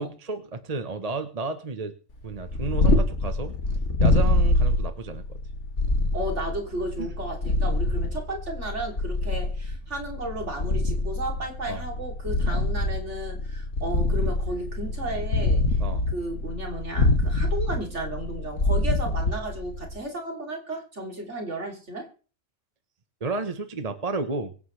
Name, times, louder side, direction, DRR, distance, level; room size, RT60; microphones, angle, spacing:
voice 1, 0.0-1.9 2.2-3.5 4.0-5.2 7.0-7.1 11.7-11.8 12.5-12.6 15.8-16.0 23.2-24.5, right 3 dB, 30° right, 8 dB, 1.2 m, -32 dB
Purr, 2.3-20.0, left 2 dB, 60° left, 2.1 m, -25 dB
voice 2, 6.1-15.6 16.1-22.1, right 1 dB, 60° right, 1 dB, 3.6 m, -34 dB
24.0 x 9.3 x 3.3 m, 0.38 s
omnidirectional pair, 1.4 m